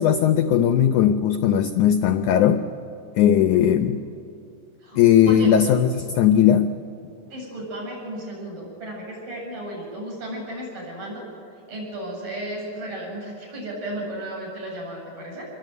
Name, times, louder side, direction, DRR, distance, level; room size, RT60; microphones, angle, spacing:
voice 1, 0.0-2.6 3.2-4.0 4.9-6.7, left 9 dB, 80° left, 9 dB, 1.8 m, -18 dB
voice 2, 3.5-3.9 4.8-5.0 5.3-5.5 7.2-11.2 11.7-15.4, right 1 dB, 55° right, -1 dB, 9.1 m, -34 dB
26.5 x 22.0 x 9.3 m, 2.6 s
omnidirectional pair, 4.5 m